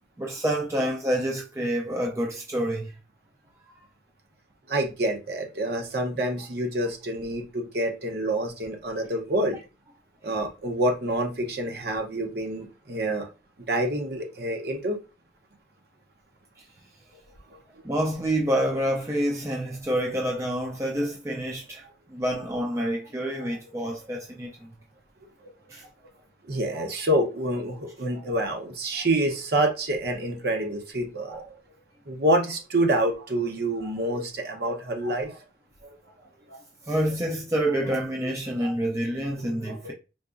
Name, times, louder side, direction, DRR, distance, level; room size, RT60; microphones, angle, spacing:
voice 1, 0.2-2.9 10.2-10.4 17.8-21.8 22.1-24.7 25.7-25.8 36.9-39.9, right 1 dB, 15° right, 0.4 m, -27 dB
voice 2, 4.7-9.6 10.2-13.3 13.7-15.0 26.4-31.4 32.1-35.4 35.8-36.0 36.5-36.6 38.6-38.7 39.7-39.9, right 1 dB, 55° right, 0.8 m, -27 dB
3.8 x 2.8 x 2.5 m
head